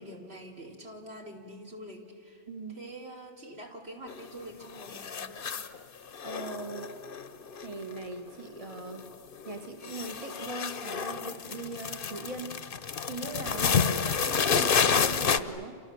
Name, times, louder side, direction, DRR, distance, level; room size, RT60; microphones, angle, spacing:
voice 1, 0.0-2.4 2.7-5.5, equal, 65° right, 0 dB, 3.4 m, -45 dB
voice 2, 2.5-2.8 6.2-6.9 7.6-9.1 9.4-12.6 13.1-15.8, right 3 dB, 30° right, 4 dB, 1.6 m, -40 dB
sound 1, 4.1-4.5 4.7-5.8 6.1-8.3 8.6-9.1 9.3-15.4, left 6 dB, 55° left, 1.0 m, -29 dB
29.0 x 27.5 x 7.1 m, 2.2 s
omnidirectional pair, 1.1 m